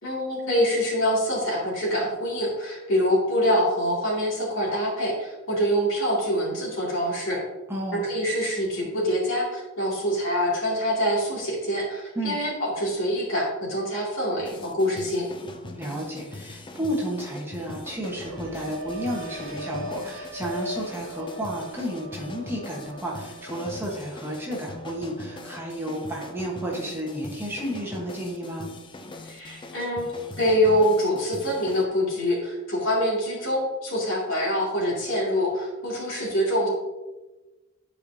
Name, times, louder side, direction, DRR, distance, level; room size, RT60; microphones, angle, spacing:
voice 1, 0.0-7.4 7.9-15.3 29.2-30.1 30.4-36.7, equal, 65° left, -4 dB, 2.5 m, -25 dB
voice 2, 7.7-8.1 12.1-12.4 15.7-28.7, right 1 dB, 10° right, -4 dB, 1.2 m, -32 dB
sound 1, 14.4-31.9, left 2 dB, 20° left, 0.4 m, -42 dB
sound 2, 18.0-27.8 28.1-28.6, left 1 dB, 65° right, 1.1 m, -41 dB
10.5 x 4.9 x 2.7 m, 1.1 s
head